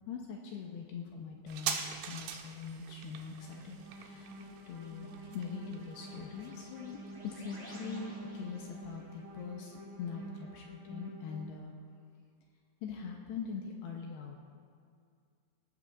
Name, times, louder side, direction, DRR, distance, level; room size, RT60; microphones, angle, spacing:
voice 1, 0.1-4.4 4.7-7.0 7.2-11.7 12.8-14.4, left 6 dB, 85° left, 1 dB, 2.4 m, -43 dB
sound 1, 1.5-8.6 8.8-8.9, right 8 dB, 85° right, 2.4 m, -43 dB
sound 2, 3.3-11.5, right 2 dB, 10° right, 2.2 m, -48 dB
19.0 x 12.0 x 2.5 m, 2.3 s
omnidirectional pair, 5.7 m